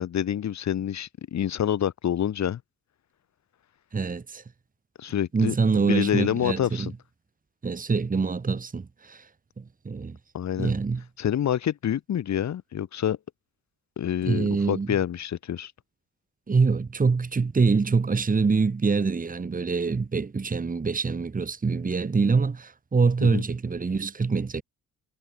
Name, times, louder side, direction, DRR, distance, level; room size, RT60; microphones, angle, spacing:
voice 1, 0.0-2.6 5.0-5.6 5.9-6.9 10.3-10.7 11.2-13.2 14.0-15.7 23.2-23.4, left 10 dB, 65° left, 7.0 m, -27 dB
voice 2, 3.9-4.4 5.3-6.9 7.6-9.3 9.6-10.2 10.6-11.0 14.2-14.9 16.5-24.6, right 4 dB, 25° right, 2.7 m, -25 dB
cardioid pair, 90°, 30 cm